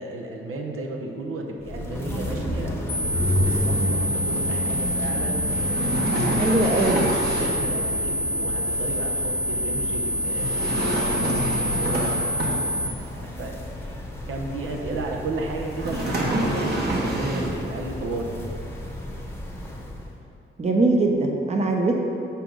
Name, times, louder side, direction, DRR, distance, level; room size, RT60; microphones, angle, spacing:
voice 1, 0.0-2.8 3.5-6.0 7.2-10.5 10.9-12.2 12.9-13.6 14.3-18.3, right 2 dB, 85° right, 0 dB, 0.9 m, -33 dB
sound 1, 1.6-20.1, equal, 10° left, 0.8 m, -31 dB
sound 2, 2.9-12.9, equal, 45° left, 0.8 m, -27 dB
sound 3, 5.5-7.7 10.3-13.0 15.7-17.7, right 1 dB, 50° right, 1.2 m, -27 dB
voice 2, 6.4-7.1 20.6-22.0, right 2 dB, 30° right, 1 dB, 0.6 m, -21 dB
5.6 x 5.1 x 6.2 m, 2.6 s
wide cardioid pair, 140°, 21 cm